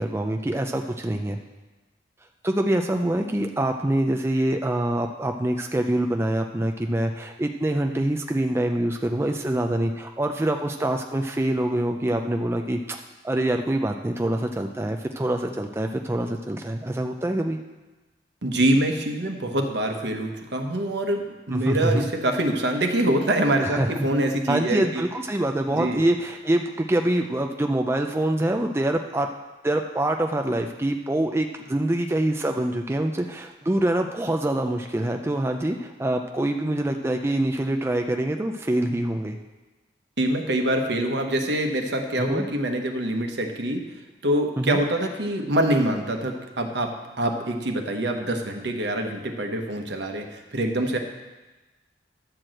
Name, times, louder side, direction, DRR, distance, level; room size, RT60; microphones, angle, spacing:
voice 1, 0.0-1.4 2.4-17.6 21.5-22.0 23.6-24.1 24.5-29.3 29.6-39.4 42.2-42.5 44.6-44.8, right 1 dB, 15° right, 4 dB, 0.4 m, -25 dB
voice 2, 18.4-25.0 25.7-26.0 40.2-43.9 44.2-51.0, right 1 dB, 70° right, 4 dB, 1.2 m, -25 dB
11.5 x 4.7 x 7.7 m, 1.1 s
head